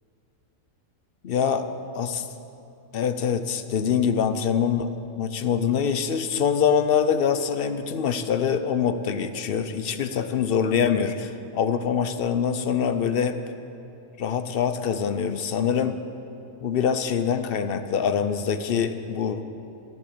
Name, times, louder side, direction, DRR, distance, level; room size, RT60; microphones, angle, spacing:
voice 1, 1.2-1.7 1.9-2.3 2.9-13.4 14.2-16.0 16.6-19.4, left 7 dB, 55° left, 10 dB, 0.7 m, -24 dB
13.0 x 10.5 x 6.7 m, 2.8 s
omnidirectional pair, 1.4 m